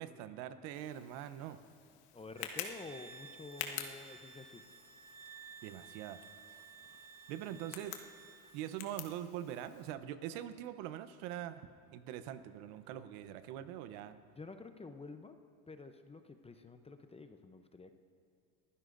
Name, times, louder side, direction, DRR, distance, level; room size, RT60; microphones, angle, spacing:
voice 1, 0.0-1.6 5.6-6.2 7.3-8.0 8.5-11.6 11.9-14.2, right 11 dB, 70° right, 12 dB, 0.9 m, -43 dB
Tick, 0.7-9.9, left 9 dB, 75° left, 1.4 m, -49 dB
voice 2, 2.1-4.7 7.5-7.6 14.3-15.4 15.7-17.9, left 3 dB, 15° left, 8 dB, 0.7 m, -50 dB
sound 1, 2.3-8.8, right 5 dB, 30° right, 1.3 m, -55 dB
23.0 x 15.5 x 2.6 m, 2.4 s
supercardioid pair, 95°, 46 cm